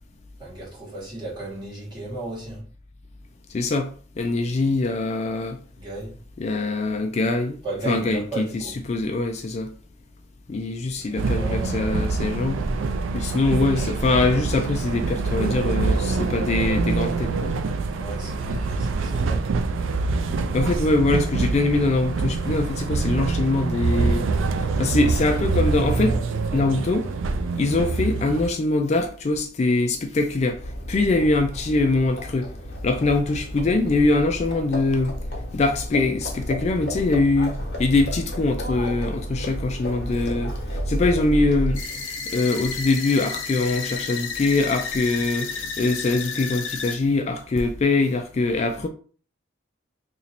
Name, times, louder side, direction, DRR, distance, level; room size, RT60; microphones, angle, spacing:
voice 1, 0.4-2.7 5.8-6.2 7.6-8.8 10.9-12.2 17.9-19.5, right 2 dB, 25° right, 1.5 m, -35 dB
voice 2, 3.5-5.6 6.4-7.6 7.9-9.7 10.5-12.6 13.1-17.5 20.5-24.3 24.5-26.2 26.5-27.1 27.6-32.5 32.8-35.2 35.5-48.9, left 2 dB, 35° left, 0.3 m, -23 dB
sound 1, 11.2-28.5, right 3 dB, 80° right, 0.4 m, -25 dB
Livestock farm animals working animals, 30.4-42.0, equal, 55° left, 1.0 m, -31 dB
sound 2, 41.7-47.0, left 5 dB, 90° left, 0.8 m, -31 dB
2.9 x 2.7 x 4.2 m
head